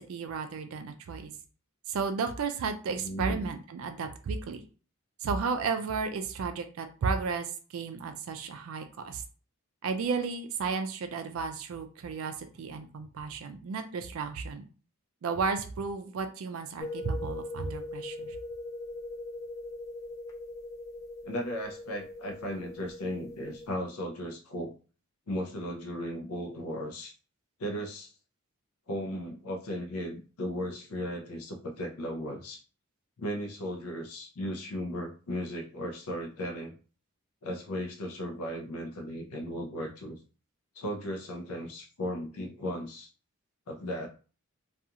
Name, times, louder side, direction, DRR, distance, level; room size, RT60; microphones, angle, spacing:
voice 1, 0.1-1.3 1.9-4.6 5.2-9.2 9.8-14.6 15.2-18.4, right 5 dB, 70° right, 7 dB, 0.3 m, -33 dB
voice 2, 3.0-3.5 21.2-24.7 25.3-27.1 27.6-28.1 28.9-32.6 33.2-36.8 37.4-40.2 40.7-43.1 43.7-44.1, equal, 80° left, 3 dB, 0.5 m, -36 dB
sound 1, 16.8-23.7, left 2 dB, 15° left, 0.3 m, -41 dB
2.4 x 2.3 x 2.8 m, 0.37 s
head